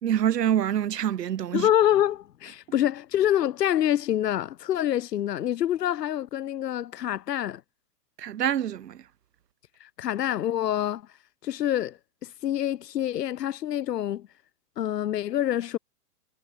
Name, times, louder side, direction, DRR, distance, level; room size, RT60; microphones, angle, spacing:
voice 1, 0.0-1.7 8.2-9.0, right 10 dB, 90° right, 2.0 m, -26 dB
voice 2, 1.5-7.6 9.8-11.0 11.4-12.0 12.2-14.3 14.8-15.8, left 11 dB, 85° left, 1.2 m, -26 dB
hypercardioid pair, 175°, 47 cm